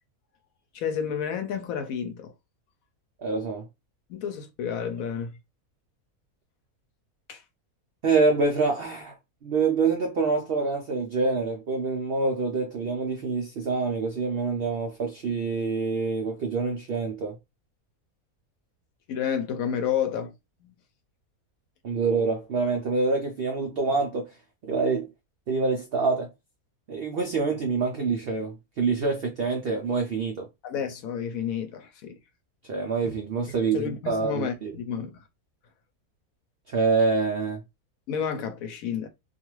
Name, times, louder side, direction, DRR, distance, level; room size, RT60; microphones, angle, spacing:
voice 1, 0.7-2.3 4.1-5.4 7.3-7.4 19.1-20.3 20.6-20.7 30.6-32.2 33.7-35.2 38.1-39.1, left 8 dB, 70° left, 0.9 m, -30 dB
voice 2, 3.2-3.6 8.0-9.1 9.4-17.4 21.8-24.3 24.7-25.1 25.5-26.3 26.9-30.5 32.7-34.7 36.7-37.6, right 4 dB, 75° right, 0.5 m, -26 dB
2.5 x 2.3 x 3.0 m
omnidirectional pair, 1.6 m